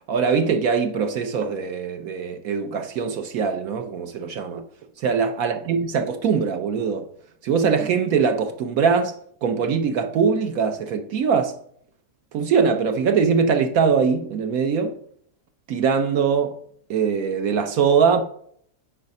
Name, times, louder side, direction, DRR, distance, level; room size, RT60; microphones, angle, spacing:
voice 1, 0.1-4.6 5.0-7.0 7.4-9.1 9.4-11.5 12.3-15.0 15.7-16.5 16.9-18.2, right 6 dB, 70° right, 1.1 m, -22 dB
6.5 x 4.8 x 5.2 m
omnidirectional pair, 1.6 m